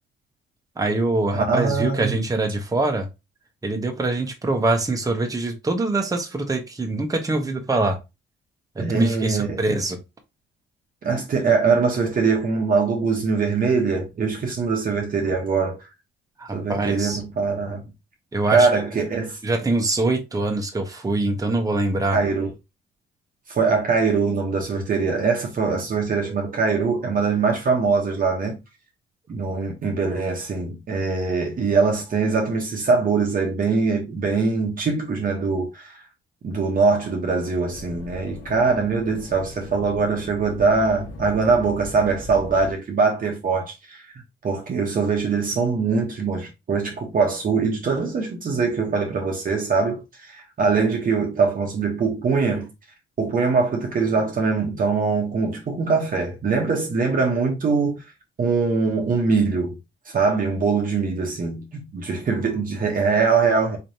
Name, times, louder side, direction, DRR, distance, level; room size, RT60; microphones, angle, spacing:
voice 1, 0.8-3.1 3.6-8.0 8.7-10.0 16.4-17.2 18.3-19.0 19.4-22.2, right 2 dB, 15° right, 1.0 m, -24 dB
voice 2, 1.3-2.2 8.8-9.6 11.0-15.8 16.5-17.8 18.5-19.4 22.1-22.5 23.5-28.6 29.3-36.0 36.4-44.1 44.4-52.7 53.2-58.0 58.4-59.8 60.0-63.8, right 4 dB, 45° right, 1.0 m, -22 dB
sound 1, 37.7-42.7, left 1 dB, 90° left, 1.6 m, -39 dB
4.2 x 3.1 x 2.7 m
cardioid pair, 90°, 20 cm